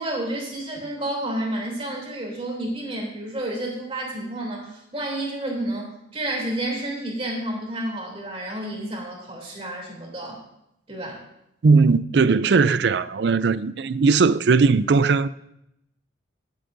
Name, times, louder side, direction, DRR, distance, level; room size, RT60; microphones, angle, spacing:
voice 1, 0.0-10.4 10.9-11.2, right 1 dB, 30° right, 3.1 m, -30 dB
voice 2, 11.6-15.3, right 4 dB, 60° right, 0.4 m, -18 dB
21.0 x 8.1 x 2.7 m
head